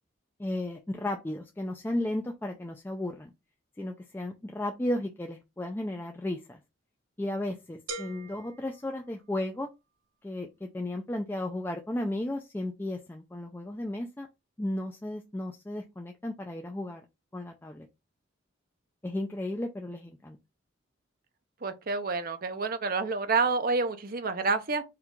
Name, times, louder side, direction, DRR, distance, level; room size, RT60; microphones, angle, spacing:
voice 1, 0.4-3.3 3.8-6.6 7.2-9.7 10.2-14.3 14.6-17.0 17.3-17.9 19.0-20.4, left 1 dB, 10° left, 0.3 m, -34 dB
sound 1, 7.9-9.8, right 3 dB, 85° right, 0.9 m, -43 dB
voice 2, 21.6-24.8, right 4 dB, 45° right, 0.6 m, -28 dB
4.4 x 2.3 x 3.7 m
head